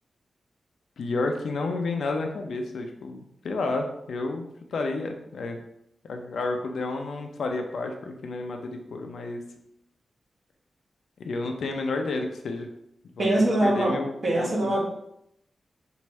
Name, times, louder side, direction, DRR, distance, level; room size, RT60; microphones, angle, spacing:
voice 1, 1.0-5.6 6.0-9.4 11.2-12.7 13.2-14.7, left 3 dB, 80° left, 4 dB, 0.5 m, -31 dB
voice 2, 13.2-14.0 14.2-14.8, right 1 dB, 45° right, -2 dB, 1.3 m, -23 dB
4.6 x 2.6 x 3.2 m, 0.78 s
wide cardioid pair, 85°, 0 cm